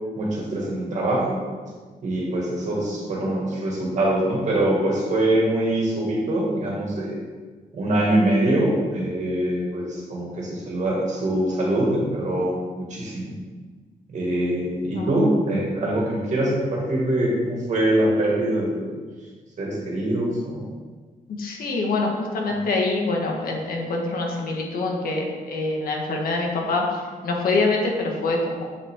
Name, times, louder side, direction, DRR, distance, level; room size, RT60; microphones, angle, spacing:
voice 1, 0.2-1.4 2.0-7.2 7.7-13.3 14.1-18.8 19.6-20.7, right 1 dB, 50° right, -3 dB, 2.0 m, -23 dB
voice 2, 0.7-1.1 2.7-2.9 14.9-15.1 21.3-26.8 27.2-28.7, left 3 dB, 70° left, 0 dB, 1.4 m, -25 dB
7.7 x 5.8 x 3.7 m, 1.4 s
wide cardioid pair, 160°, 15 cm